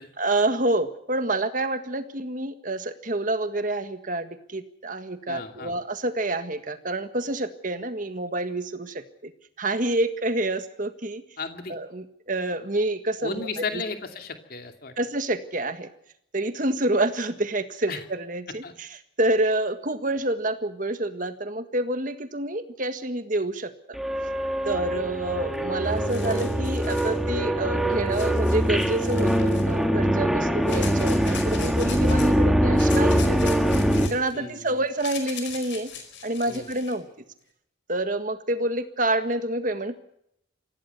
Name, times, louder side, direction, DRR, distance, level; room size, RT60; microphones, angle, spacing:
voice 1, 0.2-9.3 9.6-11.2 11.7-13.6 15.0-15.9 16.3-18.9 19.2-23.7 24.7-33.6 34.1-35.9 36.2-37.1 37.9-40.0, right 2 dB, 40° right, 9 dB, 1.7 m, -28 dB
voice 2, 5.3-5.8 11.4-11.7 13.2-14.9 17.9-18.0 18.6-18.7 34.3-34.8 36.5-36.7, left 4 dB, 50° left, 5 dB, 2.5 m, -34 dB
sound 1, 24.0-34.1, equal, ahead, 1.7 m, -23 dB
sound 2, 25.6-25.7 25.9-27.2 28.1-29.8 30.7-32.3 32.8-37.0, left 7 dB, 65° left, 4.9 m, -40 dB
25.5 x 16.5 x 6.8 m, 0.75 s
head